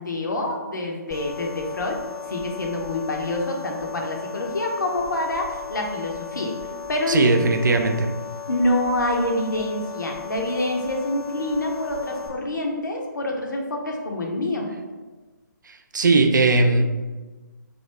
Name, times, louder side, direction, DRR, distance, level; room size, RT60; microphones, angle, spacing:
voice 1, 0.0-2.0 2.3-6.5 6.9-7.3 8.5-14.7, left 1 dB, 70° left, 1 dB, 0.7 m, -26 dB
sound 1, 1.1-12.3, left 7 dB, 5° right, 0.4 m, -36 dB
voice 2, 7.1-8.1 15.7-16.8, right 3 dB, 70° right, 6 dB, 0.4 m, -19 dB
3.1 x 2.6 x 3.2 m, 1.2 s
figure-of-eight pair, 140°, 11 cm